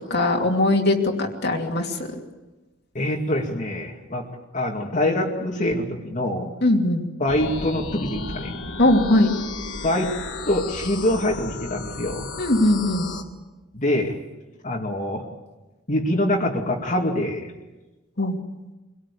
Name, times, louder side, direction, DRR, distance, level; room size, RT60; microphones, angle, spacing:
voice 1, 0.1-2.2 6.6-7.1 8.8-9.3 12.4-13.1 18.2-18.4, left 1 dB, 55° left, 1 dB, 2.8 m, -20 dB
voice 2, 2.9-4.2 4.5-6.5 7.2-8.5 9.8-10.1 10.5-12.3 13.7-14.1 14.6-15.2 15.9-17.5, left 1 dB, 40° left, -1 dB, 2.5 m, -24 dB
sound 1, 7.3-13.2, left 3 dB, 75° left, 2.1 m, -34 dB
24.5 x 18.5 x 8.6 m, 1.1 s
head